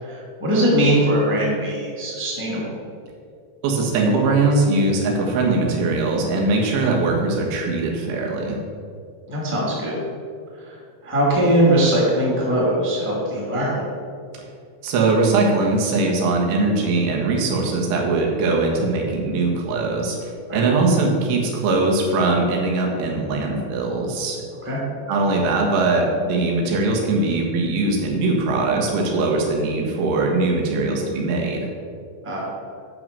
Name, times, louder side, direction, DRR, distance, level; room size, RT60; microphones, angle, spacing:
voice 1, 0.0-2.6 9.3-9.9 10.6-10.7 11.0-13.8 20.5-20.6 24.6-24.8 32.2-32.5, right 1 dB, 5° right, -5 dB, 1.5 m, -20 dB
voice 2, 3.6-8.6 14.8-24.4 25.1-31.7, right 3 dB, 85° right, 0 dB, 4.0 m, -21 dB
9.9 x 6.3 x 6.8 m, 2.3 s
omnidirectional pair, 5.3 m